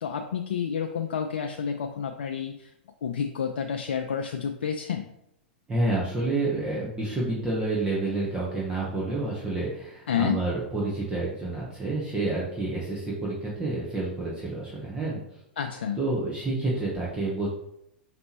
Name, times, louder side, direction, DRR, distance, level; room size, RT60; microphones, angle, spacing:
voice 1, 0.0-2.7 3.0-5.1 10.1-10.4 15.6-16.0, left 7 dB, 75° left, 5 dB, 0.4 m, -29 dB
voice 2, 5.7-15.2 16.0-17.5, right 2 dB, 15° right, -6 dB, 1.0 m, -29 dB
5.1 x 3.0 x 3.0 m, 0.78 s
hypercardioid pair, 105°, 6 cm